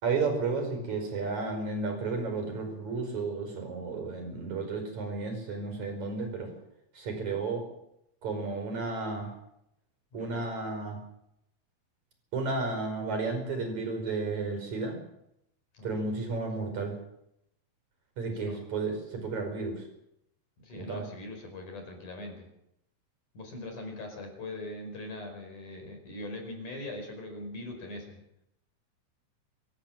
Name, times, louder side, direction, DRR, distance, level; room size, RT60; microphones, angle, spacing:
voice 1, 0.0-6.5 6.9-7.6 8.2-9.3 10.1-11.0 12.3-15.0 15.8-16.9 18.2-19.8 20.7-21.0, right 4 dB, 40° right, 5 dB, 6.0 m, -32 dB
voice 2, 10.1-10.4 15.7-16.5 18.3-18.7 20.6-22.5 23.3-28.2, left 2 dB, 40° left, 4 dB, 5.9 m, -41 dB
25.5 x 15.0 x 7.6 m, 0.80 s
omnidirectional pair, 5.5 m